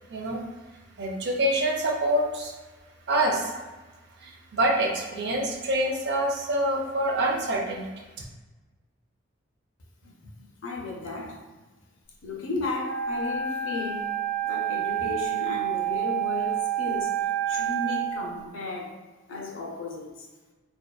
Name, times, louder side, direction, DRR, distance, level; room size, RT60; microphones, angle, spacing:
voice 1, 0.1-0.4 1.0-2.5 3.1-3.5 4.2-7.9, right 1 dB, 60° right, 0 dB, 0.4 m, -26 dB
voice 2, 10.0-11.6 12.2-14.1 14.4-17.2 17.5-19.0 19.3-20.3, left 3 dB, 80° left, 0 dB, 0.5 m, -35 dB
Wind instrument woodwind instrument, 12.8-18.1, right 10 dB, 85° right, 0.8 m, -28 dB
2.6 x 2.2 x 2.2 m, 1.2 s
head